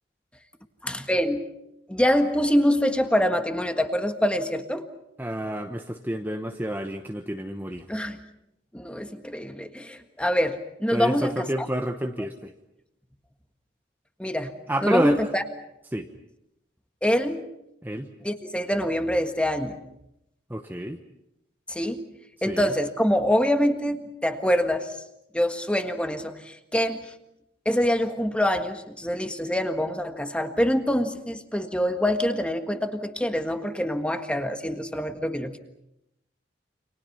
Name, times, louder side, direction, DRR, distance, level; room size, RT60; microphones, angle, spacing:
voice 1, 0.8-1.5 1.9-4.9 7.9-8.2 8.7-11.7 14.2-14.5 14.8-15.4 17.0-17.5 18.2-19.8 21.7-22.0 22.4-24.9 25.3-27.0 27.6-35.6, equal, 5° left, 7 dB, 1.6 m, -25 dB
voice 2, 5.2-7.9 10.9-12.5 14.7-15.2 15.9-16.1 17.8-18.1 20.5-21.0 22.5-22.7, right 1 dB, 10° right, 4 dB, 1.1 m, -29 dB
29.5 x 26.5 x 5.7 m, 0.83 s
head